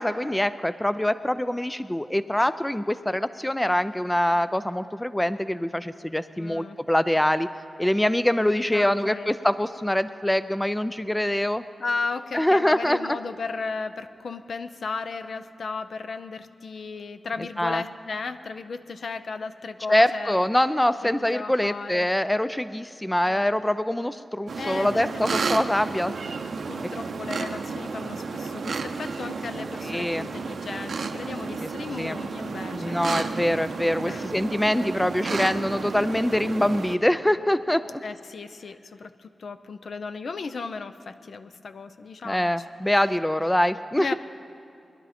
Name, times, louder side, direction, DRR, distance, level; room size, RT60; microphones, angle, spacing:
voice 1, 0.0-7.5 7.8-11.6 12.3-13.2 17.6-17.8 19.9-26.1 29.8-30.2 31.6-31.7 32.0-32.2 32.7-38.0 42.2-44.1, left 1 dB, 10° left, 13 dB, 0.3 m, -24 dB
voice 2, 6.4-6.8 8.7-9.3 11.8-20.4 21.2-22.1 23.2-23.5 24.6-25.4 26.7-33.0 34.0-34.3 38.0-42.5 44.0-44.1, left 4 dB, 65° left, 10 dB, 0.5 m, -35 dB
sound 1, 24.5-37.0, right 4 dB, 70° right, 0.7 m, -32 dB
21.0 x 11.0 x 4.2 m, 2.7 s
wide cardioid pair, 110°, 0 cm